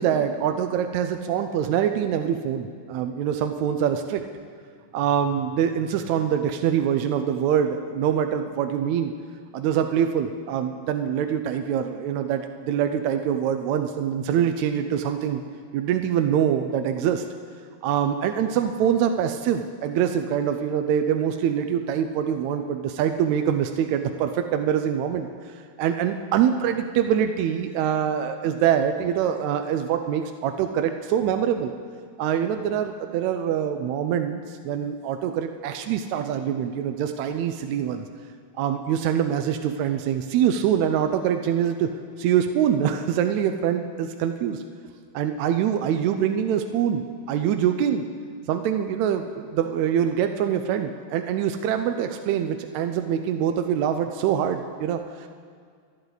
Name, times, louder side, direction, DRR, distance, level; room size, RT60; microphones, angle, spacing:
voice 1, 0.0-4.2 4.9-9.1 9.5-15.4 15.7-17.2 17.8-25.3 25.8-31.7 32.2-38.1 38.6-41.9 42.2-44.6 45.1-48.0 48.5-55.3, right 9 dB, 80° right, 6 dB, 1.9 m, -24 dB
25.0 x 9.8 x 4.0 m, 2.1 s
omnidirectional pair, 3.3 m